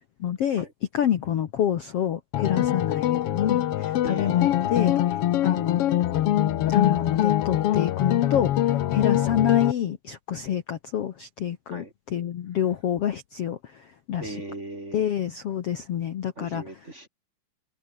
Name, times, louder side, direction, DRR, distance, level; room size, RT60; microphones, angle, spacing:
voice 1, 0.2-0.7 0.9-4.9 5.4-5.8 6.7-14.4 14.9-16.6, left 10 dB, 60° left, 1.8 m, -27 dB
sound 1, 2.3-9.7, left 12 dB, 85° left, 1.3 m, -23 dB
voice 2, 4.0-4.9 11.7-11.9 14.2-15.1 16.4-17.1, right 2 dB, 20° right, 2.7 m, -39 dB
omnidirectional pair, 4.0 m